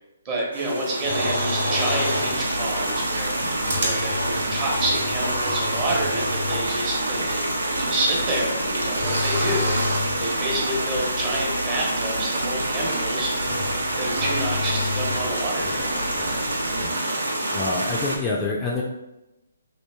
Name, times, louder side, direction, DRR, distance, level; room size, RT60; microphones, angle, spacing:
voice 1, 0.2-13.3 14.0-16.1, right 1 dB, 30° right, -3 dB, 1.0 m, -29 dB
sound 1, 0.5-18.2, right 1 dB, 80° right, 0.7 m, -27 dB
sound 2, 1.0-2.4 3.1-3.2 3.7-6.6 6.9-7.0 8.9-10.2 12.9-13.0 13.4-13.8 14.1-15.1, left 1 dB, 65° right, 1.1 m, -28 dB
sound 3, 2.2-16.9, left 2 dB, 90° left, 0.5 m, -36 dB
voice 2, 15.6-16.4 16.8-18.8, left 3 dB, 15° left, -4 dB, 0.4 m, -29 dB
2.8 x 2.5 x 3.5 m, 0.95 s
figure-of-eight pair, 140°, 0 cm